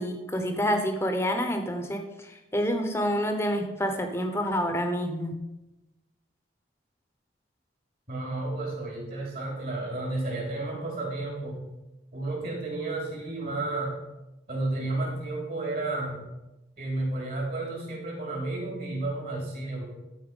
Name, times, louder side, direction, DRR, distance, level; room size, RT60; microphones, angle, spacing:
voice 1, 0.0-5.4, equal, 15° left, 5 dB, 1.0 m, -28 dB
voice 2, 8.1-11.7 12.1-14.0 14.5-16.2 16.8-19.8, right 2 dB, 50° right, -3 dB, 3.7 m, -32 dB
13.0 x 4.6 x 5.5 m, 0.96 s
head